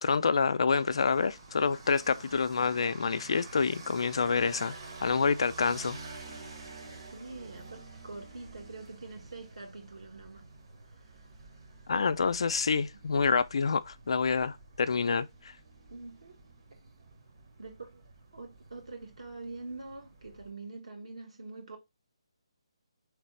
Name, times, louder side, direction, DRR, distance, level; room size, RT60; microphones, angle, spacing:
voice 1, 0.0-4.7 5.0-6.0 11.9-15.3, left 5 dB, 60° left, 0.4 m, -27 dB
sound 1, 0.7-20.5, right 3 dB, 50° right, 1.1 m, -49 dB
voice 2, 7.1-10.5 10.9-11.2 12.9-13.0 15.9-16.4 17.6-18.0 18.3-21.8, right 3 dB, 80° right, 1.6 m, -45 dB
3.9 x 3.2 x 3.1 m
figure-of-eight pair, 155°, 3 cm